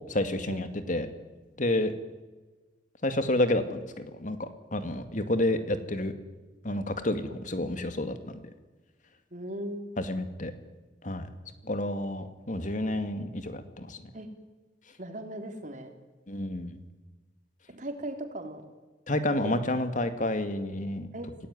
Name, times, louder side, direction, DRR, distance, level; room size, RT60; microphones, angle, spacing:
voice 1, 0.1-1.1 1.6-1.9 3.0-6.1 6.6-8.4 10.0-10.5 11.0-11.3 11.6-14.0 16.3-16.8 19.1-21.1, left 1 dB, 45° left, 9 dB, 2.3 m, -29 dB
voice 2, 9.3-9.9 14.1-14.3 15.0-15.9 17.7-18.7 19.4-19.6 21.1-21.5, right 1 dB, 45° right, 5 dB, 3.5 m, -38 dB
27.0 x 17.5 x 9.6 m, 1.3 s
head